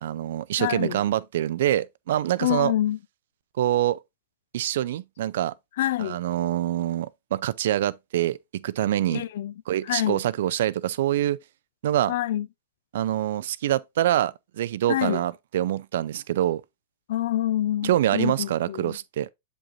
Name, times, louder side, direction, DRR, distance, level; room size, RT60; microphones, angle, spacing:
voice 1, 0.0-2.7 3.6-4.0 4.5-5.5 6.0-9.3 9.7-11.4 11.8-12.1 12.9-16.6 17.8-19.3, right 12 dB, 65° right, 0.4 m, -25 dB
voice 2, 0.6-1.0 2.4-3.0 5.8-6.2 9.1-9.5 9.9-10.2 12.1-12.5 14.9-15.2 17.1-19.0, left 13 dB, 65° left, 0.4 m, -26 dB
7.3 x 5.2 x 2.5 m
hypercardioid pair, 110°, 0 cm